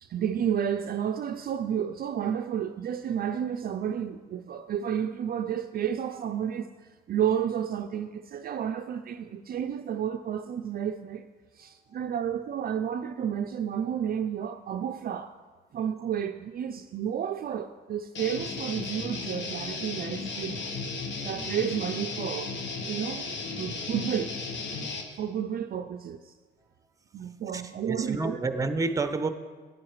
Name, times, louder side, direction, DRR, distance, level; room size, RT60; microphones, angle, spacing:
voice 1, 0.0-6.7 7.1-11.3 11.5-15.3 15.7-20.6 21.2-22.6 22.9-23.3 23.6-24.3 25.2-26.3 27.1-28.4, right 8 dB, 50° right, 7 dB, 0.4 m, -31 dB
Guitar, 18.1-25.0, left 4 dB, 65° left, 1.1 m, -35 dB
voice 2, 27.9-29.3, right 3 dB, 15° right, 9 dB, 0.6 m, -29 dB
11.0 x 9.3 x 3.1 m, 1.4 s
cardioid pair, 90°, 20 cm